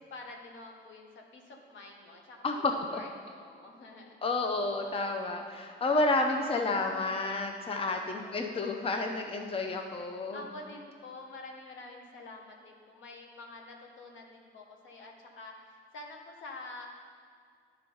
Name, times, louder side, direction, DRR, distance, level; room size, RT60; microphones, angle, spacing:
voice 1, 0.0-2.4 2.9-4.2 5.5-5.8 7.7-8.5 10.3-16.9, left 2 dB, 75° left, 1 dB, 1.2 m, -48 dB
voice 2, 2.4-3.0 4.2-10.4, left 2 dB, 30° left, 4 dB, 0.7 m, -30 dB
10.0 x 4.4 x 5.4 m, 2.2 s
cardioid pair, 90°, 20 cm